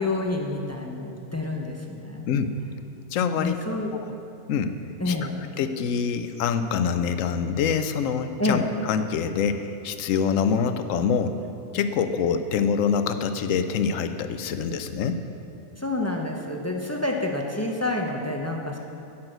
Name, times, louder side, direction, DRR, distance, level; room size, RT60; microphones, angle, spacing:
voice 1, 0.0-2.3 3.4-3.9 5.0-5.4 8.4-8.6 15.8-18.8, left 2 dB, 20° left, 0 dB, 0.4 m, -28 dB
voice 2, 3.1-3.6 3.9-4.1 4.5-4.8 5.1-5.2 5.6-11.4 11.7-15.2, left 6 dB, 70° left, 9 dB, 1.0 m, -25 dB
9.6 x 5.9 x 7.7 m, 2.7 s
omnidirectional pair, 1.4 m